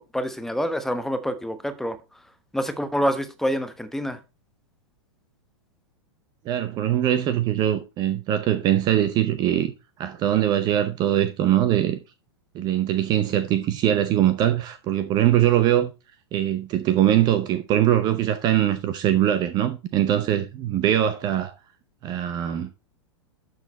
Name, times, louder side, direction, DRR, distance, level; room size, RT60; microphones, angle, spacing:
voice 1, 0.1-2.0 2.5-4.2, equal, ahead, 1.0 m, -26 dB
voice 2, 6.5-9.7 10.0-12.0 12.5-15.9 16.3-21.5 22.0-22.7, right 11 dB, 30° right, 0.7 m, -22 dB
12.0 x 4.1 x 4.1 m
figure-of-eight pair, 100°, 15 cm